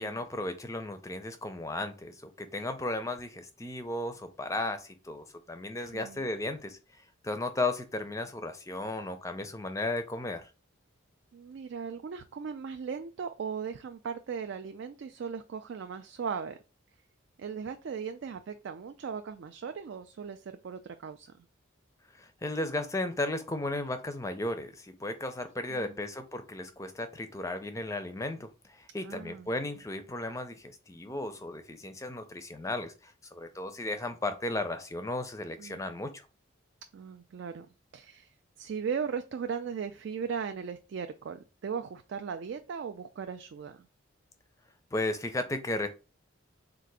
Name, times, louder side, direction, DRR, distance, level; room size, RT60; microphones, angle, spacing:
voice 1, 0.0-6.8 7.2-10.5 22.1-36.2 44.9-45.9, left 2 dB, 15° left, 0.5 m, -35 dB
voice 2, 5.8-6.3 11.3-16.6 17.4-21.3 25.7-25.9 29.0-29.5 35.6-35.9 36.9-37.7 37.9-38.3 38.6-43.9, right 6 dB, 55° right, 0.3 m, -38 dB
3.8 x 2.5 x 4.6 m
head